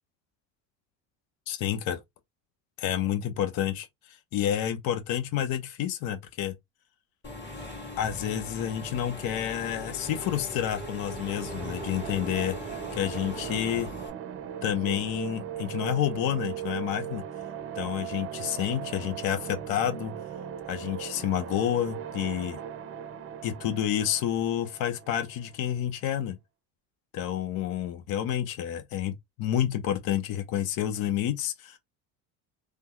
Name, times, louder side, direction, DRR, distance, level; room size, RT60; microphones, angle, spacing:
voice 1, 1.5-2.0 2.8-6.5 8.0-12.6 13.0-13.9 14.6-17.2 17.7-20.1 20.7-22.6 23.4-26.4 27.1-31.8, left 10 dB, 60° left, 1.0 m, -29 dB
Engine / Mechanisms, 7.2-14.1, left 1 dB, 25° left, 2.0 m, -39 dB
sound 1, 11.1-25.8, right 9 dB, 35° right, 0.6 m, -39 dB
3.3 x 2.2 x 3.0 m
supercardioid pair, 85°, 40 cm